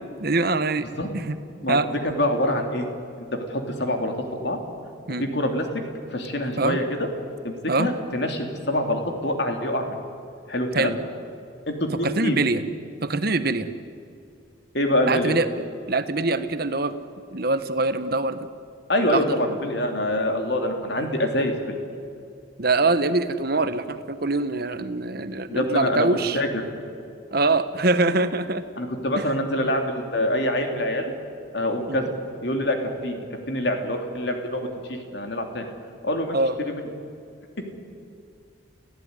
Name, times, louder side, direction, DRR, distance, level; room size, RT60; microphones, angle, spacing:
voice 1, 0.2-0.9 1.1-1.4 1.7-1.9 5.1-5.3 6.6-6.8 7.7-7.9 10.7-11.0 12.0-12.6 13.0-13.7 15.1-15.5 15.9-16.9 17.3-18.4 19.0-19.4 22.6-26.4 27.3-28.6 29.2-29.3 31.9-32.0 36.3-36.6, right 3 dB, 50° right, 11 dB, 1.2 m, -23 dB
voice 2, 2.0-2.9 3.2-4.6 5.2-5.6 6.1-7.1 7.4-10.0 10.5-10.9 11.7-12.4 14.7-15.4 18.9-21.5 25.5-26.1 26.3-26.5 28.8-31.1 31.5-32.0 32.4-32.8 33.0-33.2 33.5-35.6 36.0-36.4 36.6-36.9, left 1 dB, 55° left, 4 dB, 3.2 m, -25 dB
30.0 x 15.5 x 9.7 m, 2.4 s
head